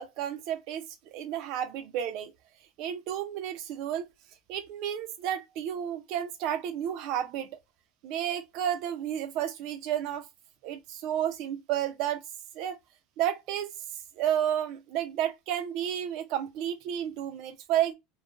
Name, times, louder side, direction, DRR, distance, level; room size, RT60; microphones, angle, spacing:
voice 1, 0.0-2.3 2.8-4.1 4.5-7.5 8.0-10.3 10.6-12.2 12.5-12.8 13.2-13.7 14.2-17.9, right 10 dB, 65° right, 0.6 m, -31 dB
3.1 x 2.1 x 2.4 m
supercardioid pair, 115°, 0 cm